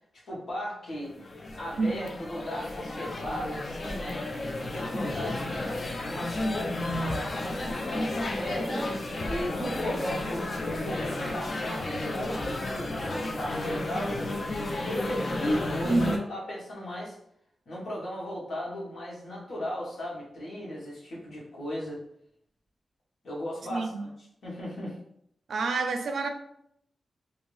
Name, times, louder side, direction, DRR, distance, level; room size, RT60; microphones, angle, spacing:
voice 1, 0.3-1.1 1.5-4.2 4.6-6.5 6.9-9.0 9.3-10.4 10.8-14.3 14.8-17.2 17.7-22.0 23.2-25.0, equal, 75° left, -5 dB, 1.2 m, -36 dB
sound 1, 0.9-16.2, left 2 dB, 40° left, 0.4 m, -32 dB
voice 2, 1.8-2.1 15.8-16.2 23.7-24.1 25.5-26.3, right 3 dB, 75° right, 6 dB, 0.4 m, -28 dB
2.7 x 2.6 x 3.1 m, 0.72 s
wide cardioid pair, 160°, 0 cm